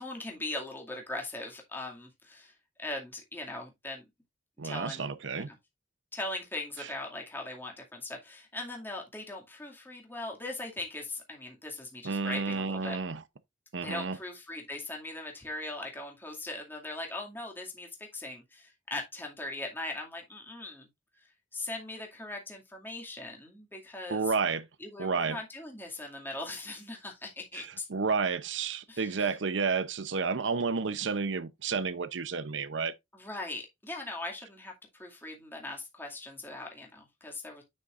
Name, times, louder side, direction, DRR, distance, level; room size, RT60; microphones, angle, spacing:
voice 1, 0.0-2.5 2.8-4.0 4.6-5.1 5.3-5.6 6.1-13.0 13.8-20.9 21.5-24.2 24.8-27.9 28.9-29.3 33.1-34.7 35.0-37.6, left 2 dB, 10° left, 2.2 m, -40 dB
voice 2, 4.6-5.5 6.8-6.9 12.0-13.2 13.7-14.2 24.1-24.6 25.0-25.4 27.5-32.9, right 5 dB, 75° right, 0.7 m, -31 dB
9.7 x 6.3 x 2.5 m
head